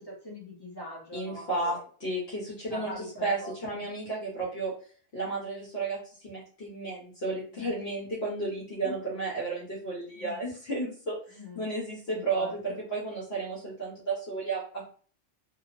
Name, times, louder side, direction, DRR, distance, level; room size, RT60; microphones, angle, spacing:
voice 1, 0.0-1.8 2.7-3.5 7.5-7.8 8.8-9.0 10.2-10.4 11.3-11.7 12.1-12.8, left 1 dB, 25° left, -4 dB, 0.6 m, -43 dB
voice 2, 1.1-2.9 3.2-4.7 5.1-14.8, right 3 dB, 60° left, -6 dB, 1.1 m, -33 dB
2.9 x 2.0 x 2.5 m, 0.43 s
omnidirectional pair, 1.2 m